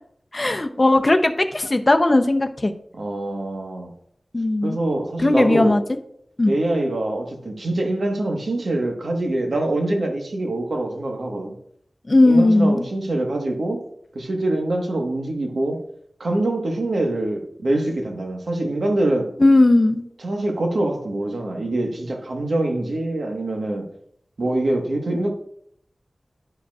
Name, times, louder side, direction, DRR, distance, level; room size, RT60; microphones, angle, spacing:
voice 1, 0.3-2.7 4.3-4.8 5.2-5.8 6.4-6.5 12.1-12.8 19.4-20.0, left 2 dB, 35° left, 0.6 m, -17 dB
voice 2, 3.0-3.9 4.6-5.8 6.4-11.5 12.2-13.8 14.1-15.8 16.2-19.3 20.2-23.8 24.4-25.3, right 1 dB, 80° right, 1.3 m, -24 dB
11.0 x 5.0 x 2.4 m
wide cardioid pair, 75°, 0 cm